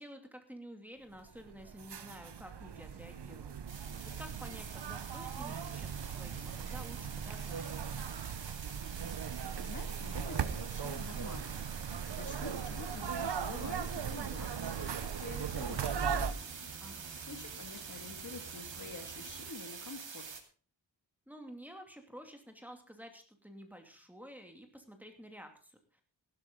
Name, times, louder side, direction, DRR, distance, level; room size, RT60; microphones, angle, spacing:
voice 1, 0.0-3.5 4.2-7.7 16.8-17.2 21.3-26.0, equal, 5° right, 3 dB, 2.6 m, -51 dB
sound 1, 1.3-16.3, right 7 dB, 65° right, 1.0 m, -38 dB
sound 2, 3.7-20.4, right 5 dB, 80° right, 2.5 m, -47 dB
voice 2, 9.6-16.9 17.3-20.3, left 3 dB, 40° left, 5 dB, 2.2 m, -48 dB
sound 3, 10.8-19.5, right 6 dB, 35° right, 0.9 m, -53 dB
16.0 x 12.5 x 3.8 m, 0.38 s
wide cardioid pair, 130°, 44 cm